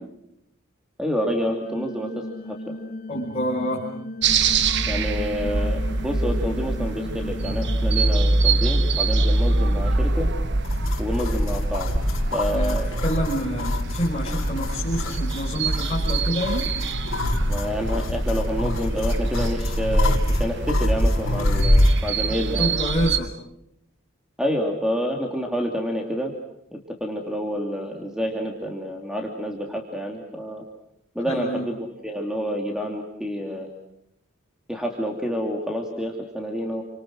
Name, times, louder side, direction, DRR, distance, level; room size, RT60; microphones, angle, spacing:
voice 1, 1.0-2.6 4.9-10.3 11.0-11.9 12.3-12.9 17.5-22.8 24.4-26.3 26.7-30.6 31.1-31.8 32.0-33.7 34.7-36.8, equal, 5° right, 1 dB, 2.8 m, -28 dB
sound 1, 1.7-8.1, left 1 dB, 50° left, 2.0 m, -36 dB
voice 2, 3.1-3.9 12.5-16.7 22.6-23.3 31.2-31.7, equal, 30° left, -4 dB, 5.2 m, -27 dB
sound 2, 4.2-23.2, right 3 dB, 60° right, 1.3 m, -25 dB
sound 3, 10.6-22.0, left 1 dB, 75° left, 3.3 m, -25 dB
29.5 x 26.0 x 6.3 m, 0.79 s
head